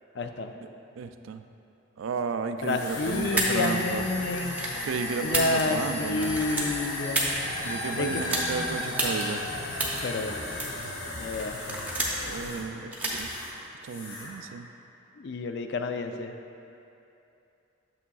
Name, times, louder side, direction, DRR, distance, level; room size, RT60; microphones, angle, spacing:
voice 1, 0.2-0.5 2.6-4.6 5.2-7.3 7.9-8.2 10.0-10.4 11.2-11.6 15.2-16.3, left 3 dB, 55° left, 6 dB, 0.4 m, -29 dB
voice 2, 1.0-1.4 2.0-4.1 4.8-6.4 7.6-9.4 12.2-13.3 13.8-14.7, right 5 dB, 85° right, 9 dB, 0.3 m, -33 dB
sound 1, 2.6-13.6 13.9-14.4, left 2 dB, 75° left, 0.9 m, -35 dB
sound 2, 3.4-3.7 4.4-4.8 5.2-5.9 6.2-7.4 8.2-8.5 9.0-9.2 9.8-10.0 10.6-10.9 11.3-12.3 12.9-13.2, right 2 dB, 10° right, 0.7 m, -29 dB
8.4 x 6.8 x 2.3 m, 2.7 s
head